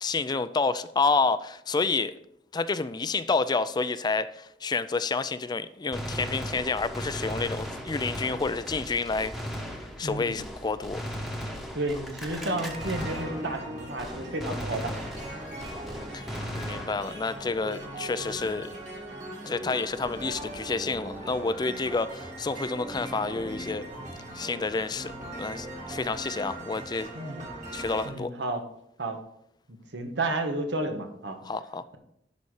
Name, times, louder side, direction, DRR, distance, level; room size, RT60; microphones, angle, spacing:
voice 1, 0.0-2.1 2.5-9.3 10.0-11.0 16.1-18.7 19.5-23.8 24.3-27.1 27.7-28.3 31.4-31.8, left 4 dB, 25° left, 13 dB, 0.4 m, -29 dB
Gunshot gunfire, 5.9-13.7 14.0-17.3, equal, ahead, 1.1 m, -37 dB
voice 2, 10.0-10.4 11.7-15.1 21.7-21.8 27.1-27.5 28.0-28.6 29.0-29.2 29.7-31.4, right 2 dB, 90° right, 5 dB, 1.3 m, -32 dB
sound 1, 12.4-28.1, right 1 dB, 45° right, 2.4 m, -39 dB
11.0 x 4.2 x 4.8 m, 0.73 s
head